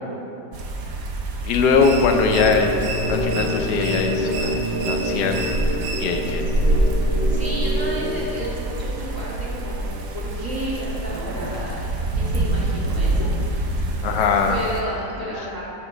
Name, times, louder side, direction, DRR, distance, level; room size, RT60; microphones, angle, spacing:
sound 1, 0.5-14.8, right 1 dB, 55° right, 1.2 m, -26 dB
voice 1, 1.4-2.7 3.1-4.6 4.9-5.5 6.0-6.5 14.0-14.6, left 5 dB, 70° left, 4 dB, 1.3 m, -21 dB
sound 2, 1.8-6.4, right 3 dB, 85° right, 1.7 m, -33 dB
sound 3, 1.9-8.4, equal, 85° left, 2.0 m, -27 dB
voice 2, 7.3-14.0 14.5-15.6, right 1 dB, 10° right, -7 dB, 1.9 m, -32 dB
13.5 x 6.9 x 3.3 m, 2.7 s
omnidirectional pair, 1.9 m